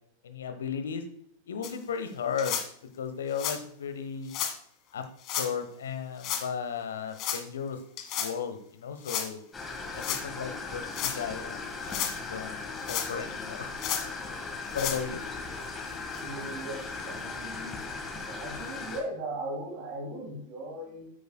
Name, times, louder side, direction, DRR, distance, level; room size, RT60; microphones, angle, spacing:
voice 1, 0.2-1.0 1.5-2.6 3.0-4.4 4.9-7.8 8.2-9.4 9.9-13.7 14.7-15.2, left 7 dB, 65° left, 8 dB, 1.0 m, -35 dB
sound 1, 1.6-1.7 2.4-2.7 3.3-3.6 4.3-4.5 5.2-5.5 6.2-6.5 7.2-7.4 8.0-8.3 9.0-9.3 10.0-10.2 10.8-11.2 11.7-12.2 12.8-13.3 13.8-14.1 14.7-15.0 15.6-15.7 16.1-16.2 17.0-17.1, left 9 dB, 40° left, 1.2 m, -32 dB
sound 2, 9.5-19.0, left 4 dB, 15° left, 1.7 m, -38 dB
voice 2, 16.2-17.8 18.3-21.1, right 1 dB, 45° right, 1 dB, 1.9 m, -38 dB
10.0 x 8.4 x 2.2 m, 0.63 s
figure-of-eight pair, 90°, 0 cm